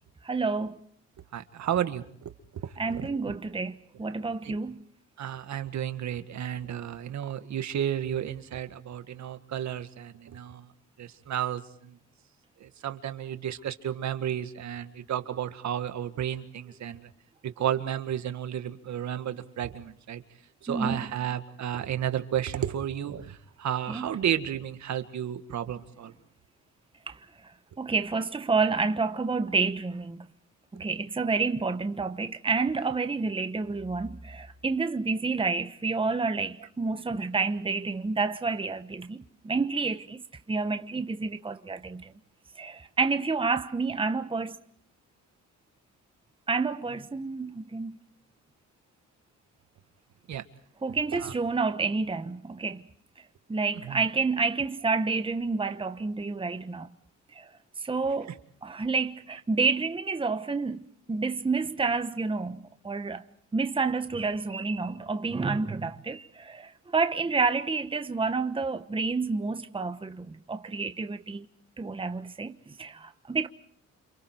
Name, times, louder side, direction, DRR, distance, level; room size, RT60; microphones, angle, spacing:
voice 1, 0.2-0.8 2.8-4.8 20.7-21.0 23.9-24.1 27.1-27.2 27.8-30.2 30.7-40.2 40.5-42.1 42.6-44.5 46.5-48.0 50.8-52.8 53.5-56.9 57.3-57.5 57.8-58.3 58.6-60.8 61.1-63.2 63.5-71.5 71.8-73.5, right 4 dB, 15° right, 1.2 m, -29 dB
voice 2, 1.3-2.0 2.6-3.4 4.4-4.6 5.2-10.7 11.0-12.0 12.6-17.1 17.4-20.2 20.6-26.1 50.3-50.5 51.1-51.4 53.8-54.1, right 10 dB, 65° right, 1.9 m, -32 dB
30.0 x 27.5 x 4.5 m
cardioid pair, 90°, 30 cm